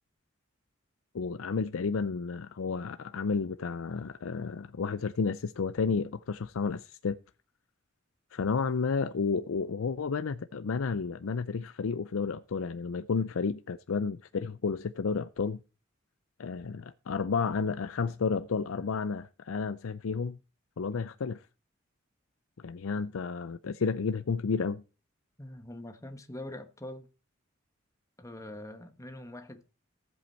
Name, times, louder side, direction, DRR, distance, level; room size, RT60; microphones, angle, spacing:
voice 1, 1.1-7.2 8.3-15.6 16.4-20.4 20.8-21.4 22.6-24.8, left 5 dB, 90° left, 0.5 m, -31 dB
voice 2, 25.4-27.1 28.2-29.6, left 1 dB, 15° left, 1.2 m, -43 dB
14.5 x 8.0 x 4.4 m
head